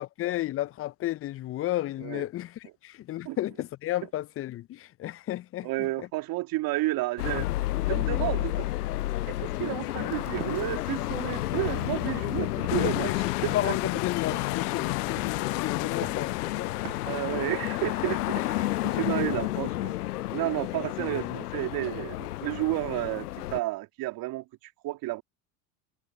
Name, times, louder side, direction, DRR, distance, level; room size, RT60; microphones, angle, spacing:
voice 1, 0.0-5.7 12.7-13.2 13.5-16.8 18.4-18.5 18.9-19.3 21.0-21.3, left 14 dB, 30° left, 0.6 m, -33 dB
voice 2, 5.6-7.5 7.8-8.7 9.3-13.9 17.0-19.9 20.3-25.2, right 18 dB, 50° right, 2.9 m, -32 dB
sound 1, 7.2-23.6, left 16 dB, 80° left, 0.6 m, -31 dB
sound 2, 10.1-18.0, right 13 dB, 75° right, 1.6 m, -48 dB
sound 3, 12.7-17.7, left 31 dB, 55° left, 0.9 m, -33 dB
hypercardioid pair, 75°, 45 cm